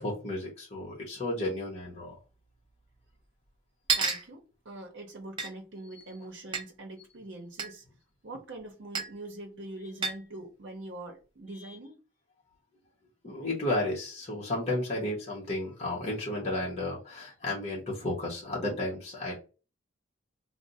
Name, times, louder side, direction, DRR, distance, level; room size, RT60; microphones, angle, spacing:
voice 1, 0.0-2.2 11.6-11.8 13.2-19.4, left 1 dB, 30° left, 0.8 m, -33 dB
sound 1, 1.9-2.0 2.1-2.2 3.1-3.2 3.9-4.3 5.4-5.5 6.5-6.6 7.6-7.7 8.9-9.1 10.0-10.3, right 5 dB, 25° right, 0.4 m, -29 dB
voice 2, 4.0-7.8 8.2-12.0, right 2 dB, 60° right, 0.7 m, -43 dB
2.5 x 2.0 x 3.9 m
head